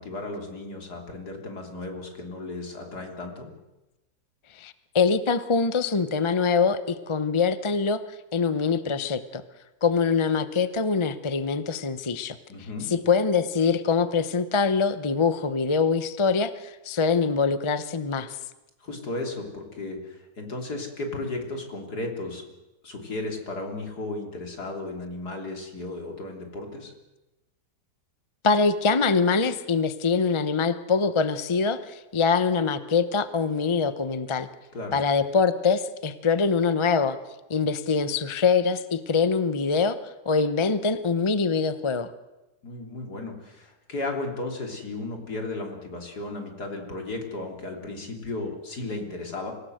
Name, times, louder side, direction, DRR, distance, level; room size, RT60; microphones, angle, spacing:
voice 1, 0.0-3.5 12.5-12.9 18.8-22.4 22.8-26.9 34.7-35.0 42.6-49.5, left 2 dB, 70° left, 2 dB, 3.8 m, -34 dB
voice 2, 4.6-8.0 8.3-9.4 9.8-12.4 12.9-18.4 28.4-34.5 34.9-37.2 37.5-40.0 40.3-42.1, left 5 dB, 25° left, 12 dB, 0.7 m, -24 dB
25.5 x 17.0 x 7.9 m, 1.0 s
omnidirectional pair, 1.8 m